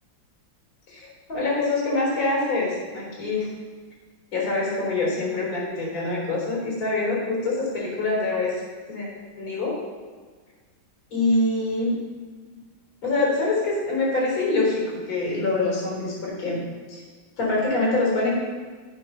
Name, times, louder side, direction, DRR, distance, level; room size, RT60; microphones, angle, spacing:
voice 1, 0.9-3.5 4.3-8.5 8.9-9.1 9.4-9.8 11.1-12.0 13.0-16.6 16.9-17.0 17.4-18.3, left 2 dB, 85° left, -4 dB, 4.8 m, -25 dB
15.5 x 5.4 x 5.7 m, 1.5 s
omnidirectional pair, 2.3 m